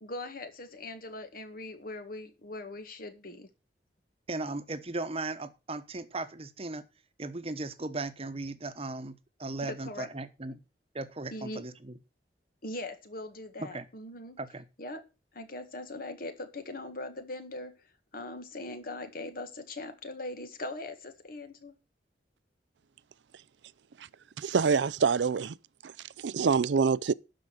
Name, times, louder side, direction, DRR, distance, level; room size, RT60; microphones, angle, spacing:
voice 1, 0.0-3.5 9.6-10.1 10.5-10.6 11.3-11.6 12.6-14.4 14.8-15.0 15.3-17.7 18.1-21.7, left 2 dB, 55° left, 1.8 m, -40 dB
voice 2, 4.3-6.8 7.2-10.6 10.9-12.0 13.6-13.9 14.4-14.6, right 2 dB, 35° right, 1.1 m, -37 dB
voice 3, 24.4-25.5 25.8-25.9 26.2-27.1, right 5 dB, 85° right, 0.5 m, -25 dB
12.0 x 5.1 x 7.7 m
head